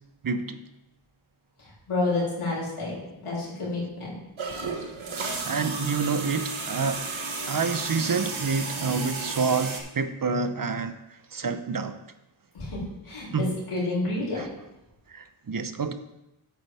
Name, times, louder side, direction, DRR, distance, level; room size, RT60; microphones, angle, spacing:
voice 1, 0.2-0.6 5.4-7.1 7.5-11.0 11.3-12.0 13.3-13.5 14.3-14.5 15.1-15.9, right 4 dB, 40° right, 10 dB, 0.8 m, -28 dB
voice 2, 1.9-3.0 3.2-4.2 12.5-12.8 13.0-14.4, left 2 dB, 85° left, -6 dB, 3.6 m, -29 dB
sound 1, 4.4-9.8, right 4 dB, 70° right, 1.5 m, -33 dB
9.0 x 8.1 x 3.5 m, 0.93 s
cardioid pair, 40°, 50 cm